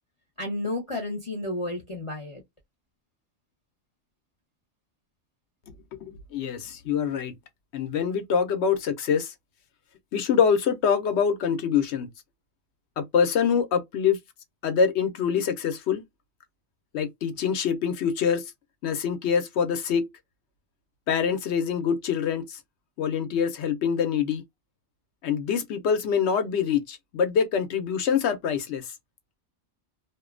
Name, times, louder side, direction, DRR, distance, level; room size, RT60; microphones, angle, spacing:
voice 1, 0.4-2.4, left 2 dB, 30° left, 0.7 m, -31 dB
voice 2, 6.0-7.3 7.7-9.3 10.1-12.1 13.0-14.2 14.6-16.0 16.9-18.4 18.8-20.0 21.1-22.6 23.0-24.4 25.2-28.9, left 7 dB, 70° left, 0.8 m, -25 dB
2.5 x 2.1 x 2.4 m
omnidirectional pair, 1.3 m